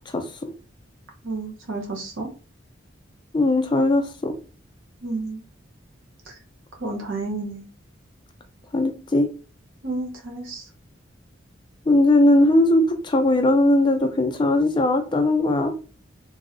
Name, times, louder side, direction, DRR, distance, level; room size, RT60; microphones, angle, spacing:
voice 1, 1.2-2.3 5.0-5.4 6.2-6.4 6.8-7.6 9.8-10.7, right 3 dB, 80° right, 1 dB, 0.9 m, -31 dB
voice 2, 3.3-4.3 8.7-9.3 11.9-15.7, left 1 dB, 25° left, 6 dB, 0.4 m, -19 dB
3.1 x 2.7 x 2.5 m, 0.36 s
head